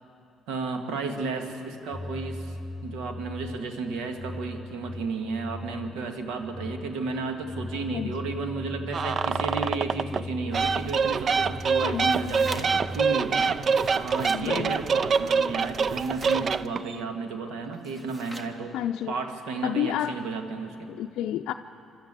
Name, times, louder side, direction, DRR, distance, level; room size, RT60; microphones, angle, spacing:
voice 1, 0.5-2.6 2.8-13.6 13.9-18.7 19.1-20.9, right 4 dB, 85° right, 5 dB, 1.7 m, -33 dB
sound 1, 1.9-13.0, left 2 dB, 5° left, 3.7 m, -39 dB
sound 2, 8.9-10.2 10.5-17.0, right 5 dB, 50° right, 0.4 m, -25 dB
voice 2, 11.8-12.3 14.3-14.8 18.7-19.1 19.6-20.2 20.9-21.5, left 12 dB, 80° left, 4 dB, 0.4 m, -30 dB
sound 3, 11.9-12.9 13.6-14.5 15.6-16.5 17.7-18.6, right 1 dB, 25° right, 1.7 m, -43 dB
25.5 x 13.0 x 8.2 m, 2.7 s
supercardioid pair, 75°, 0 cm